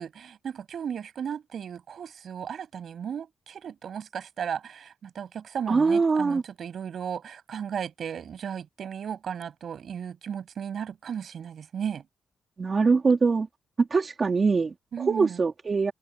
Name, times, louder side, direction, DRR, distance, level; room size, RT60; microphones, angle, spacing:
voice 1, 0.0-12.0 14.9-15.4, right 8 dB, 65° right, 7.1 m, -35 dB
voice 2, 5.7-6.4 12.6-13.5 13.8-15.9, right 4 dB, 35° right, 3.2 m, -23 dB
wide cardioid pair, 125°, 0 cm